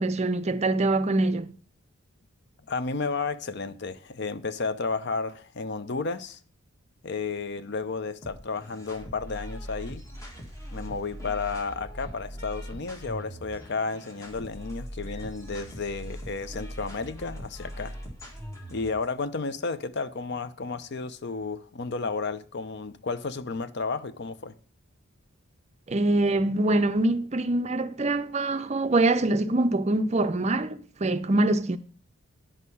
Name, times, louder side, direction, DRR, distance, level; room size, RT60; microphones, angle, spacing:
voice 1, 0.0-1.5 25.9-31.8, right 2 dB, 30° right, 0.5 m, -24 dB
voice 2, 2.7-6.4 7.0-10.0 10.7-17.9 18.7-24.5, left 4 dB, 50° left, 0.6 m, -32 dB
sound 1, 8.2-19.1, equal, 15° left, 1.8 m, -41 dB
10.0 x 6.5 x 5.5 m
head